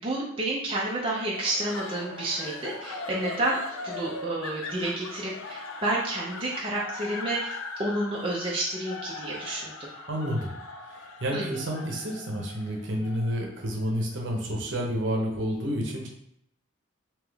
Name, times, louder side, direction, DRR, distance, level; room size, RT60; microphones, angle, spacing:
voice 1, 0.0-3.6 3.8-9.7 11.3-11.6, right 1 dB, 25° right, -4 dB, 0.6 m, -30 dB
sound 1, 1.2-14.3, left 3 dB, 85° left, 0.4 m, -40 dB
Crowd, 1.2-6.2, right 1 dB, 20° left, 0.8 m, -49 dB
voice 2, 10.1-10.5 10.9-16.1, equal, 60° right, 0 dB, 0.9 m, -30 dB
3.6 x 2.9 x 3.4 m, 0.74 s
head